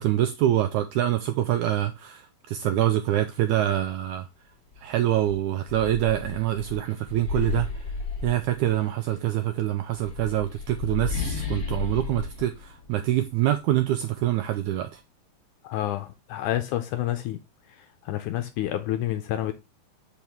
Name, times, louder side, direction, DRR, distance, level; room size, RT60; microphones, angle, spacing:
voice 1, 0.0-4.3 4.8-7.7 8.2-15.0, right 13 dB, 85° right, 1.7 m, -25 dB
sound 1, 4.7-4.9 5.3-8.9 9.8-13.5, left 4 dB, 40° left, 1.3 m, -33 dB
voice 2, 15.6-17.4 18.1-19.5, left 13 dB, 80° left, 1.8 m, -28 dB
6.0 x 5.4 x 3.5 m
omnidirectional pair, 4.0 m